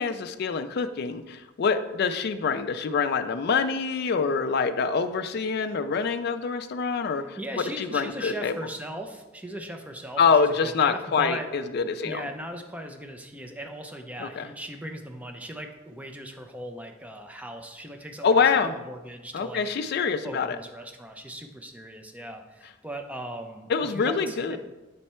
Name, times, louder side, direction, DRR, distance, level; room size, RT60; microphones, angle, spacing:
voice 1, 0.0-7.4 7.8-8.5 10.2-12.2 14.2-14.5 18.2-18.7 19.3-20.6 23.7-24.6, left 5 dB, 55° left, 9 dB, 0.4 m, -25 dB
voice 2, 7.4-11.5 12.0-18.3 18.7-24.6, equal, 5° right, 4 dB, 0.5 m, -39 dB
8.3 x 3.3 x 4.3 m, 1.1 s
head